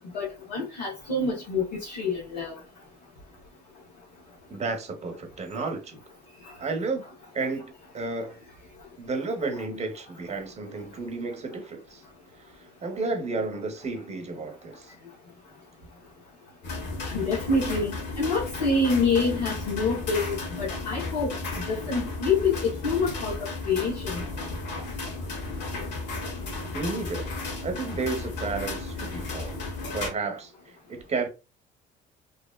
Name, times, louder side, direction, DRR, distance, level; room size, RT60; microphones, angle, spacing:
voice 1, 0.1-2.6 6.4-6.5 17.0-24.2, left 3 dB, 90° left, 0.8 m, -27 dB
voice 2, 4.5-6.0 6.6-7.0 7.3-8.4 9.0-12.0 12.8-14.9 26.7-27.3 27.6-29.6 29.9-30.5 30.9-31.3, right 3 dB, 30° right, 0.8 m, -32 dB
sound 1, 16.6-30.1, left 3 dB, 55° left, 1.0 m, -34 dB
2.8 x 2.0 x 2.2 m
hypercardioid pair, 60°, 21 cm